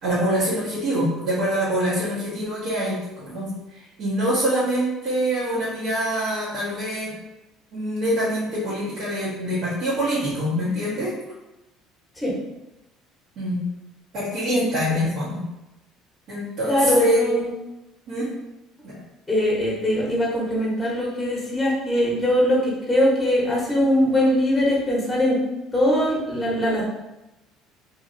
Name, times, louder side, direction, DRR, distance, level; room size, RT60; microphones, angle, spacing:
voice 1, 0.0-7.1 7.7-11.1 13.4-13.7 14.1-15.5 16.3-17.4 18.1-18.3 18.8-19.0, equal, 65° right, -9 dB, 1.1 m, -25 dB
voice 2, 14.5-15.1 16.7-17.5 19.3-25.4 25.7-26.8, equal, 5° left, -5 dB, 1.0 m, -21 dB
2.8 x 2.6 x 2.6 m, 0.96 s
cardioid pair, 105°, 0 cm